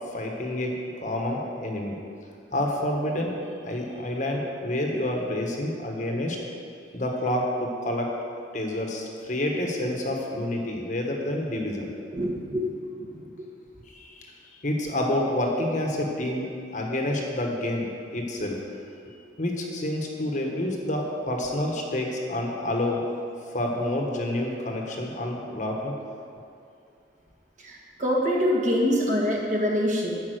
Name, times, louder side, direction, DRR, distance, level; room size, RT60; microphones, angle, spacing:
voice 1, 0.1-0.7 1.0-1.9 2.5-3.4 3.6-6.4 6.9-8.1 8.5-11.9 13.9-14.3 14.6-16.5 16.7-18.6 19.4-23.0 23.5-25.9, left 1 dB, 40° left, 0 dB, 1.3 m, -28 dB
voice 2, 12.1-12.7 13.0-13.3 27.6-30.2, equal, 40° right, -2 dB, 1.6 m, -25 dB
11.0 x 5.5 x 7.9 m, 2.4 s
head